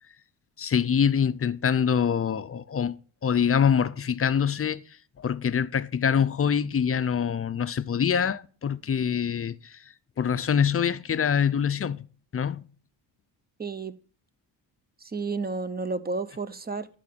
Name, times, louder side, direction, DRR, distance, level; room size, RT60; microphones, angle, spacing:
voice 1, 0.6-4.8 5.2-9.8 10.2-12.1 12.3-12.7, left 7 dB, 30° left, 0.5 m, -25 dB
voice 2, 13.6-13.9 15.0-16.9, right 4 dB, 20° right, 0.7 m, -31 dB
11.0 x 3.9 x 6.7 m
cardioid pair, 75°, 44 cm